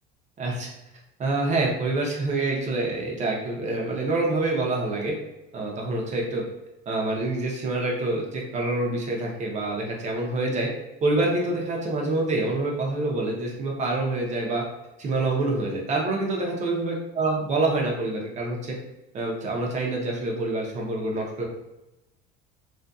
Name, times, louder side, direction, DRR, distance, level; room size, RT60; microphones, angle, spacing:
voice 1, 0.4-0.7 1.2-5.1 5.5-6.4 6.9-10.7 11.0-14.6 15.0-18.7 19.1-21.5, right 2 dB, 35° right, -1 dB, 0.8 m, -26 dB
2.6 x 2.4 x 2.3 m, 0.97 s
supercardioid pair, 115°, 21 cm